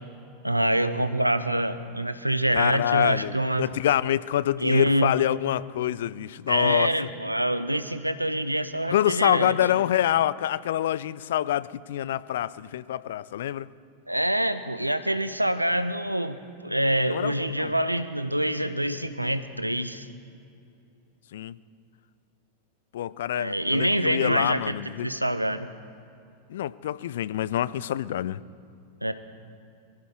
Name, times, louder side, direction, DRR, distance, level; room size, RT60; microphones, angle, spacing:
voice 1, 0.4-3.7 4.6-5.1 6.5-9.6 14.1-20.1 23.3-25.7 29.0-29.1, right 1 dB, 85° right, 12 dB, 0.7 m, -26 dB
voice 2, 2.5-6.9 8.9-13.7 17.1-17.7 21.3-21.5 22.9-25.1 26.5-28.4, left 12 dB, 60° left, 19 dB, 0.4 m, -26 dB
23.5 x 15.0 x 3.7 m, 2.5 s
figure-of-eight pair, 90°, 0 cm